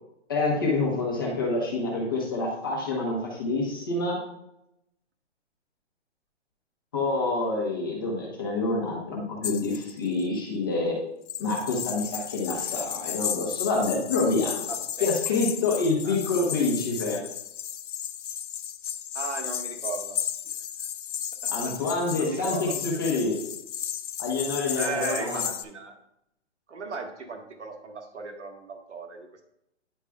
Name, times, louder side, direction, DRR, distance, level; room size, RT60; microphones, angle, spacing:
voice 1, 0.3-4.2 6.9-10.9 11.4-14.6 15.0-17.2 21.5-23.4 24.2-25.4, left 3 dB, 20° left, -2 dB, 0.9 m, -27 dB
sound 1, 9.4-10.2 11.3-25.6, left 9 dB, 75° left, 0.5 m, -34 dB
voice 2, 14.7-15.1 16.0-16.4 19.1-20.2 20.4-20.5 21.4-22.8 24.7-26.0 26.7-29.4, right 4 dB, 75° right, 3 dB, 1.5 m, -37 dB
9.8 x 4.8 x 2.3 m, 0.80 s
hypercardioid pair, 175°, 36 cm